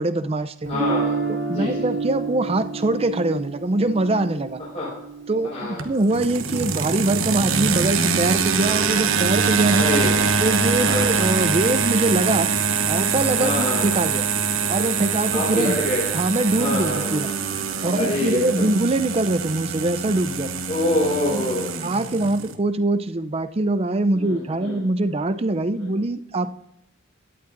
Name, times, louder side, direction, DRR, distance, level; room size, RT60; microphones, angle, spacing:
voice 1, 0.0-0.7 1.3-4.6 5.3-9.9 10.4-12.5 12.9-14.3 14.7-15.8 16.1-17.3 17.8-20.5 21.3-21.5 21.8-26.5, right 2 dB, 30° right, 11 dB, 0.5 m, -23 dB
Guitar, 0.6-6.7, right 4 dB, 65° right, 2.3 m, -30 dB
voice 2, 0.7-1.2 1.5-1.9 4.7-4.9 5.5-5.8 9.8-10.1 10.8-11.1 13.4-13.9 15.3-16.0 16.6-17.4 17.9-18.4 20.7-21.7 24.1-24.8, left 1 dB, 35° left, -8 dB, 4.7 m, -25 dB
sound 1, 5.8-22.6, right 5 dB, 80° right, 1.0 m, -24 dB
17.0 x 11.0 x 2.6 m, 0.84 s
head